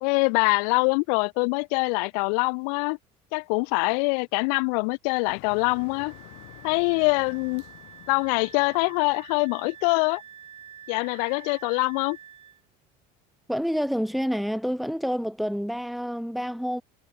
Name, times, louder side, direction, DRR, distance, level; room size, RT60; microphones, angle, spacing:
voice 1, 0.0-3.0 3.3-6.1 6.6-7.6 8.1-10.2 10.9-12.2, left 36 dB, 90° left, 0.7 m, -24 dB
Motor vehicle (road), 5.3-10.2, left 34 dB, 70° left, 1.8 m, -49 dB
Wind instrument woodwind instrument, 5.5-12.6, right 9 dB, 30° right, 7.4 m, -48 dB
voice 2, 13.5-16.8, equal, ahead, 1.4 m, -28 dB
cardioid pair, 165°, 19 cm